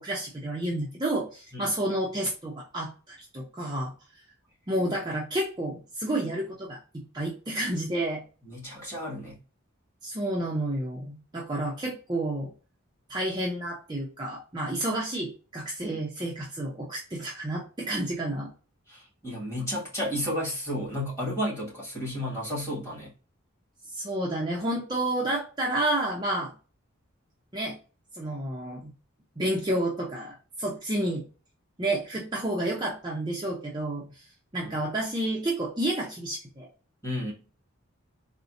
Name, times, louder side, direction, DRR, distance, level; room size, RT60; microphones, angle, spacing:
voice 1, 0.0-3.9 4.7-6.8 7.1-8.2 10.0-12.5 13.1-18.5 23.9-26.5 27.5-27.8 28.1-28.9 29.4-31.2 31.8-34.2 34.5-36.7, right 1 dB, 20° right, -3 dB, 0.5 m, -30 dB
voice 2, 8.5-9.4 18.9-23.1 34.6-34.7 37.0-37.3, equal, 15° left, -5 dB, 1.6 m, -32 dB
3.9 x 2.1 x 2.5 m, 0.35 s
head